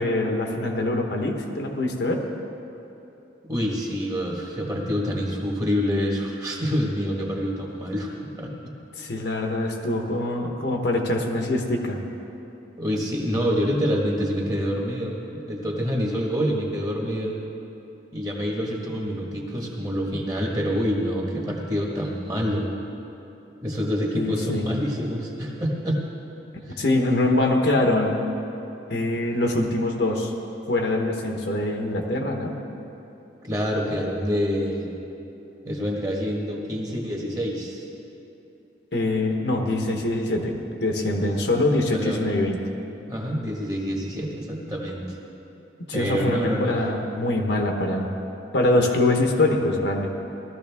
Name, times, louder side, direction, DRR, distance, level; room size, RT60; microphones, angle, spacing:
voice 1, 0.0-2.2 9.0-12.0 24.1-24.7 26.8-28.3 28.9-30.3 30.7-32.6 38.9-42.6 45.9-48.1 48.5-50.1, left 2 dB, 60° left, 2 dB, 1.1 m, -24 dB
voice 2, 3.4-8.5 12.8-17.4 18.1-22.7 23.6-26.0 26.7-26.8 33.4-34.9 35.6-37.8 41.2-41.5 41.9-42.2 43.1-45.2 45.9-46.8, equal, 20° right, -1 dB, 1.5 m, -27 dB
17.0 x 13.0 x 3.5 m, 2.9 s
head